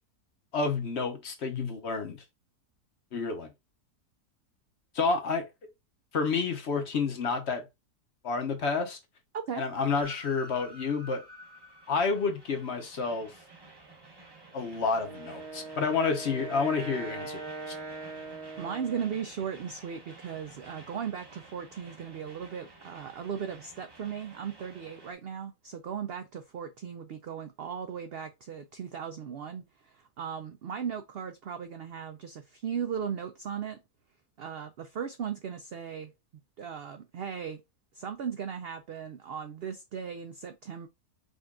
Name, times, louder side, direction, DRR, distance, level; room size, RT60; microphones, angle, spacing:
voice 1, 0.5-2.2 3.1-3.5 4.9-5.5 6.1-7.6 8.2-9.0 9.6-11.2 11.9-13.4 14.5-17.4 17.7-17.8, left 4 dB, 50° left, 1.0 m, -29 dB
Train, 10.0-25.1, right 1 dB, 20° right, 0.8 m, -51 dB
Wind instrument woodwind instrument, 15.0-19.3, right 3 dB, 50° right, 2.2 m, -41 dB
voice 2, 18.6-33.8 34.4-36.1 36.6-37.6 37.9-40.9, right 7 dB, 80° right, 0.5 m, -37 dB
5.2 x 2.4 x 3.7 m
omnidirectional pair, 1.6 m